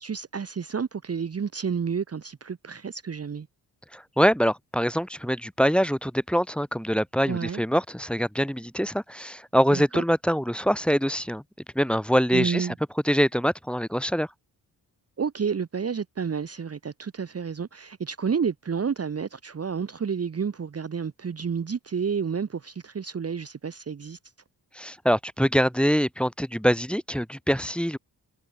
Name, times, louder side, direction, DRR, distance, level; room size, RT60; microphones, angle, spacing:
voice 1, 0.0-3.5 7.3-7.6 9.7-10.0 12.3-12.7 15.2-24.2, right 6 dB, 35° right, 1.0 m, -30 dB
voice 2, 3.9-11.4 11.7-12.7 13.0-14.3 24.7-28.0, equal, ahead, 1.7 m, -24 dB
supercardioid pair, 50°, 43 cm